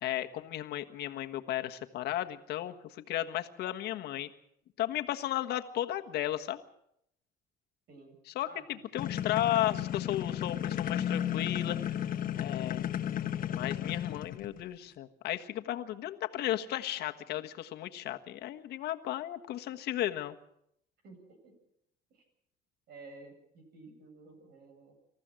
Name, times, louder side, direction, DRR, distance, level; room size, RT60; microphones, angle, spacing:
voice 1, 0.0-4.3 4.8-6.6 8.3-12.0 12.4-12.9 13.5-20.3, left 13 dB, 75° left, 7 dB, 1.5 m, -34 dB
voice 2, 8.5-8.8 21.0-21.5 22.1-22.2 22.9-24.9, right 3 dB, 70° right, 6 dB, 8.0 m, -52 dB
sound 1, 9.0-14.6, left 10 dB, 55° left, 1.1 m, -33 dB
26.5 x 14.5 x 7.7 m, 0.76 s
cardioid pair, 110°, 17 cm